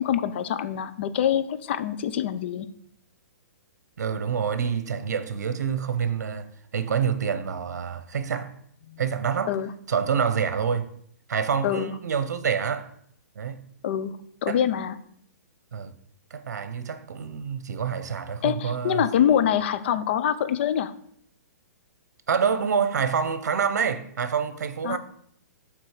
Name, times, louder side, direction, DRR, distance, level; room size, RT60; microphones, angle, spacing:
voice 1, 0.0-2.7 8.9-9.0 9.5-9.7 11.6-11.9 13.8-14.2 14.4-15.0 18.4-20.9 24.8-25.0, left 9 dB, 40° left, 0.5 m, -25 dB
voice 2, 4.0-8.6 9.0-9.5 9.9-10.9 11.3-12.9 13.4-13.6 14.5-14.6 15.7-15.9 16.3-19.1 22.3-25.0, right 7 dB, 80° right, 0.8 m, -27 dB
7.5 x 3.6 x 6.6 m
hypercardioid pair, 165°, 9 cm